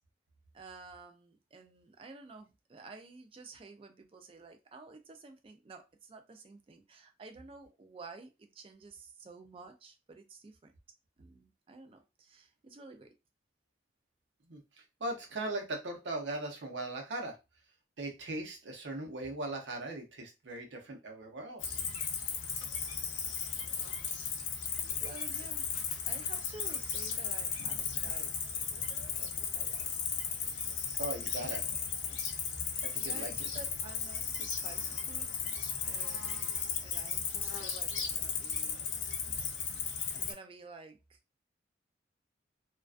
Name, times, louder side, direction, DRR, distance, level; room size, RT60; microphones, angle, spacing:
voice 1, 0.5-10.7 11.2-13.1 25.0-25.7 26.1-28.3 29.2-29.9 33.0-35.3 35.9-38.8 40.1-41.2, right 3 dB, 30° right, 6 dB, 0.3 m, -52 dB
voice 2, 15.0-17.4 18.0-21.8 31.0-31.6 32.8-33.3, right 2 dB, 75° right, 2 dB, 0.7 m, -39 dB
Cricket, 21.6-40.3, left 6 dB, 90° left, 0.5 m, -35 dB
2.3 x 2.3 x 2.4 m, 0.25 s
head